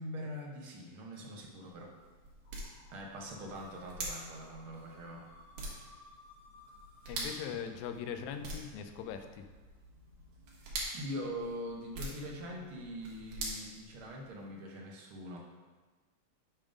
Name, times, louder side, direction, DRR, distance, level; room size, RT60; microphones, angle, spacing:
voice 1, 0.0-1.9 2.9-5.3 10.9-15.5, equal, 70° right, -1 dB, 1.3 m, -43 dB
sound 1, 1.4-14.5, right 2 dB, 90° right, 2.9 m, -45 dB
sound 2, 2.4-9.4, left 3 dB, 60° left, 1.3 m, -61 dB
voice 2, 7.1-9.5, left 8 dB, 80° left, 7 dB, 1.9 m, -41 dB
8.8 x 3.7 x 5.0 m, 1.3 s
omnidirectional pair, 3.4 m